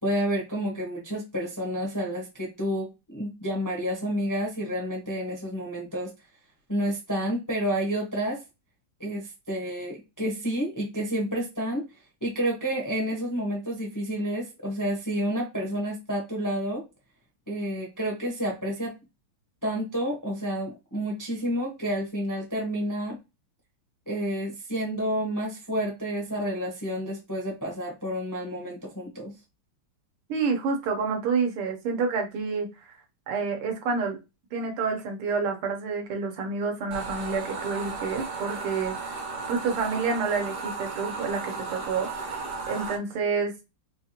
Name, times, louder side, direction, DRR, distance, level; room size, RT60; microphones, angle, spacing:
voice 1, 0.0-6.1 6.7-8.4 9.0-11.9 12.2-16.8 17.5-18.9 19.6-23.2 24.1-29.3, equal, 20° left, 0.5 m, -30 dB
voice 2, 30.3-32.7 33.3-34.2 34.5-39.0 39.5-42.3 42.7-43.5, right 4 dB, 85° right, 1.9 m, -28 dB
sound 1, 36.9-43.0, right 4 dB, 50° right, 1.0 m, -35 dB
4.5 x 2.5 x 2.8 m
omnidirectional pair, 2.4 m